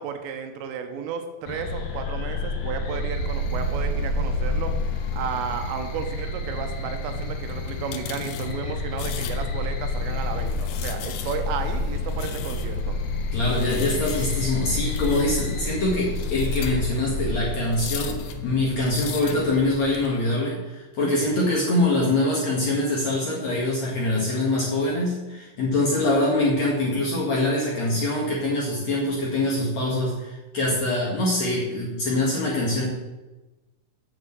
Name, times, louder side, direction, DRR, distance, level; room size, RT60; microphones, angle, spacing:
voice 1, 0.0-13.0, right 6 dB, 90° right, 6 dB, 3.6 m, -33 dB
sound 1, 1.5-19.4, left 2 dB, 65° left, 3.2 m, -29 dB
sound 2, 6.4-20.1, left 8 dB, 85° left, 3.2 m, -38 dB
voice 2, 13.3-32.9, left 1 dB, 50° left, -5 dB, 2.2 m, -24 dB
8.1 x 6.8 x 7.8 m, 1.1 s
omnidirectional pair, 5.6 m